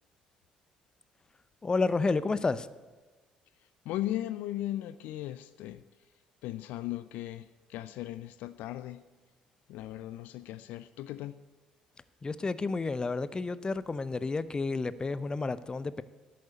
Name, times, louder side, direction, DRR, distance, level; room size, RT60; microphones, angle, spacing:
voice 1, 1.6-2.7 12.2-16.0, left 3 dB, 25° left, 16 dB, 0.7 m, -30 dB
voice 2, 3.9-5.8 6.4-9.0 9.7-11.4, left 14 dB, 65° left, 15 dB, 0.4 m, -37 dB
11.0 x 8.3 x 9.4 m, 1.3 s
figure-of-eight pair, 50°, 3 cm